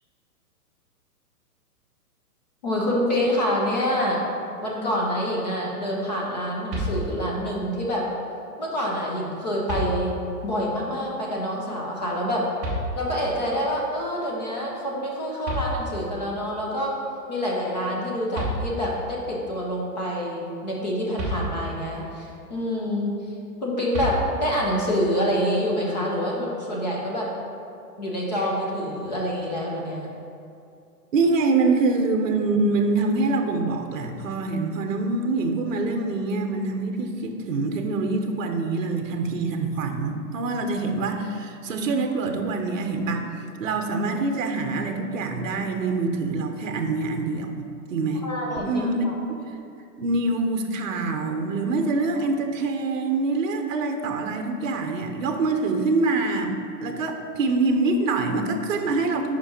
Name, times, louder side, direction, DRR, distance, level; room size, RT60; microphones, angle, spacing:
voice 1, 2.6-4.2 4.6-8.0 8.6-10.2 10.4-12.4 12.9-16.9 17.3-23.1 23.6-27.3 28.0-30.1 48.2-49.2, equal, 25° left, -3 dB, 0.7 m, -26 dB
sound 1, 6.7-7.5 9.0-9.1 9.7-10.4 12.6-13.4 15.1-15.2 15.4-16.3 18.0-18.1 18.3-19.1 21.2-22.0 23.9-24.7, right 1 dB, 10° right, 0.7 m, -30 dB
voice 2, 31.1-43.2 43.6-48.3 48.6-49.1 50.0-59.4, right 3 dB, 55° right, 5 dB, 0.8 m, -25 dB
5.2 x 5.2 x 5.0 m, 2.6 s
hypercardioid pair, 175°, 47 cm